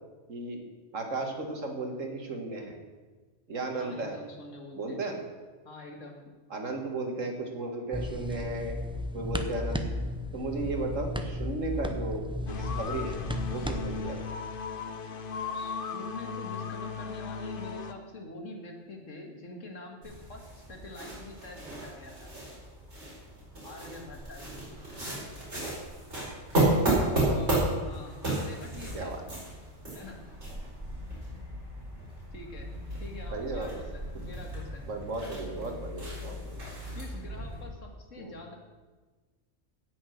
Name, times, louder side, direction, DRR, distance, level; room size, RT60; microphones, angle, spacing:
voice 1, 0.3-0.6 0.9-2.8 3.5-4.2 4.7-5.2 6.5-8.7 9.1-10.0 10.3-13.2 13.5-14.2 27.0-27.4 28.9-29.2 33.3-33.8 34.9-36.4 38.2-38.3, right 2 dB, 90° right, 3 dB, 2.1 m, -35 dB
voice 2, 3.8-5.0 5.6-6.4 15.5-22.3 23.6-24.7 27.3-29.1 29.9-30.3 32.3-32.7 33.0-34.9 36.9-38.5, left 2 dB, 85° left, 2 dB, 2.2 m, -45 dB
sound 1, 7.9-14.0, left 1 dB, 5° right, 0.5 m, -34 dB
sound 2, 12.5-17.9, left 5 dB, 50° left, 0.9 m, -37 dB
Shoes cleaning, 20.0-37.6, right 1 dB, 65° right, 4.8 m, -33 dB
16.5 x 6.4 x 6.4 m, 1.3 s
omnidirectional pair, 1.3 m